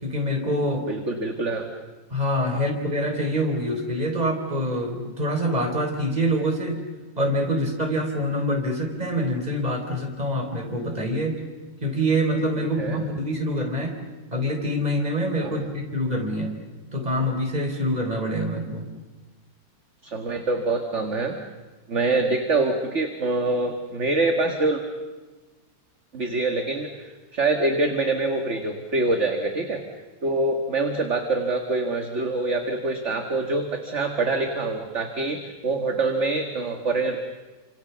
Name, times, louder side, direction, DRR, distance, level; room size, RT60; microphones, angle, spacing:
voice 1, 0.0-0.8 2.1-6.8 7.2-11.4 11.8-13.9 14.3-16.5 16.9-18.8, equal, 20° right, 3 dB, 4.1 m, -25 dB
voice 2, 0.9-1.7 2.5-2.6 12.8-13.0 15.4-15.6 20.0-21.4 21.9-24.8 26.1-29.8 30.2-37.2, right 2 dB, 40° right, 4 dB, 2.1 m, -25 dB
28.5 x 26.5 x 7.0 m, 1.2 s
omnidirectional pair, 2.1 m